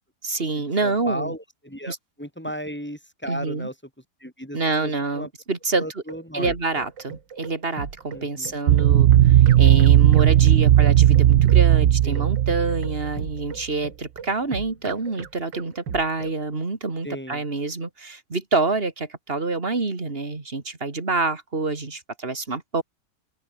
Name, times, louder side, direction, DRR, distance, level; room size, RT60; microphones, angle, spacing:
voice 1, 0.2-1.3 1.9-2.0 3.3-3.7 4.5-6.0 6.3-22.8, right 3 dB, 30° right, 2.9 m, -27 dB
voice 2, 0.8-3.7 4.2-5.3 5.7-6.5 8.1-8.5 12.0-12.3 17.0-17.4, equal, 5° left, 3.4 m, -35 dB
sound 1, 6.1-16.4, right 7 dB, 90° right, 2.6 m, -37 dB
sound 2, 8.7-13.3, right 12 dB, 75° right, 0.6 m, -16 dB
open air
omnidirectional pair, 1.9 m